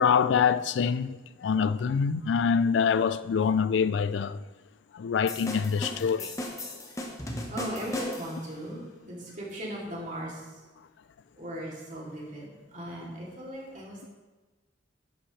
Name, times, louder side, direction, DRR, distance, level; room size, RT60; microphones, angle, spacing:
voice 1, 0.0-4.4 4.9-6.3, left 6 dB, 70° left, 0.4 m, -25 dB
sound 1, 5.3-8.5, left 1 dB, 15° left, 1.1 m, -37 dB
voice 2, 7.5-10.6 11.4-14.1, equal, 45° right, 3.0 m, -38 dB
11.5 x 8.4 x 3.3 m
head